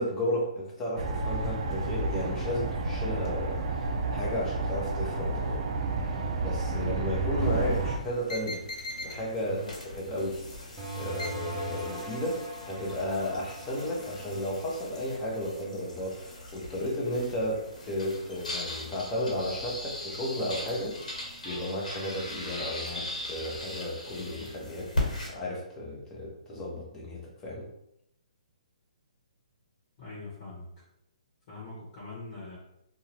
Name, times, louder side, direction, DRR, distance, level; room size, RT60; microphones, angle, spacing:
voice 1, 0.0-5.7 6.1-8.6 9.0-24.9 25.3-27.6, left 1 dB, 15° left, -4 dB, 0.9 m, -34 dB
sound 1, 1.0-8.0, right 3 dB, 50° right, 0.4 m, -30 dB
sound 2, 7.4-25.3, left 1 dB, 80° left, 1.4 m, -39 dB
voice 2, 9.4-9.7 30.0-30.7 31.5-32.6, left 2 dB, 40° left, -6 dB, 1.2 m, -42 dB
sound 3, 10.8-16.0, right 2 dB, 15° right, 0.8 m, -42 dB
2.6 x 2.3 x 3.3 m, 0.80 s
hypercardioid pair, 145°, 4 cm